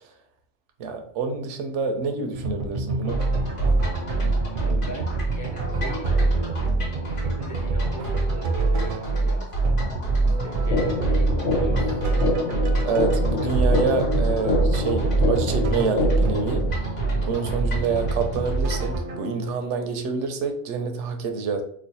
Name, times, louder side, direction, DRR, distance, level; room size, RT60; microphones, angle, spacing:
voice 1, 0.8-3.2 12.8-16.6 17.2-21.6, right 5 dB, 85° right, 6 dB, 0.9 m, -27 dB
sound 1, 2.3-19.7, right 3 dB, 60° right, 0.6 m, -31 dB
sound 2, 3.1-19.0, right 3 dB, 50° left, 1.1 m, -25 dB
voice 2, 4.6-10.0 10.2-12.1 13.3-13.8, right 1 dB, 25° left, 1 dB, 0.4 m, -40 dB
sound 3, 10.7-16.7, left 2 dB, 80° left, 1.0 m, -26 dB
3.1 x 2.2 x 4.0 m, 0.64 s
omnidirectional pair, 1.2 m